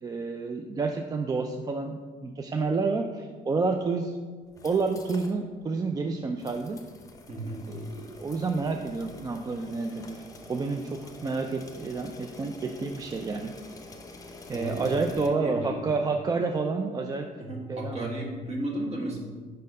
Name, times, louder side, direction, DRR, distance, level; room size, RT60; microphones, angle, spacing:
voice 1, 0.0-4.1 4.6-6.8 7.7-10.2 10.5-13.5 14.5-17.3 17.7-18.1, right 4 dB, 20° right, 4 dB, 0.3 m, -29 dB
sound 1, 4.4-5.4 5.7-5.8 6.4-15.3, left 2 dB, 20° left, 0.7 m, -47 dB
voice 2, 7.3-7.6 14.5-15.8 17.4-19.2, right 1 dB, 40° right, -1 dB, 1.6 m, -34 dB
5.2 x 4.2 x 5.3 m, 1.5 s
cardioid pair, 110°, 17 cm